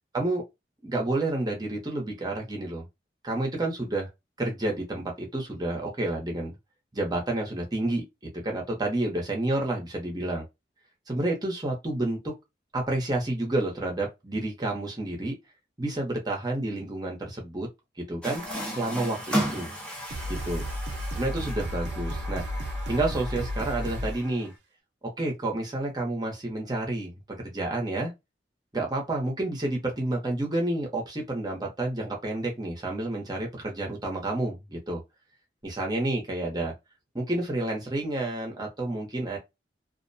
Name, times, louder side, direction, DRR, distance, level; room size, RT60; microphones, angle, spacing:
voice 1, 0.8-2.8 3.2-4.1 4.4-6.5 6.9-10.4 11.1-12.3 12.7-15.3 15.8-17.7 18.0-19.7 20.3-20.6 21.1-22.4 22.9-24.5 25.0-27.1 27.4-28.1 28.7-35.0 35.6-36.7 37.1-39.4, right 2 dB, 25° right, 0.8 m, -30 dB
Water tap faucet, 18.2-24.5, equal, 5° left, 0.7 m, -35 dB
sound 1, 18.3-19.0 19.7-19.8 20.1-24.3, equal, 75° right, 0.6 m, -33 dB
2.5 x 2.1 x 2.6 m
head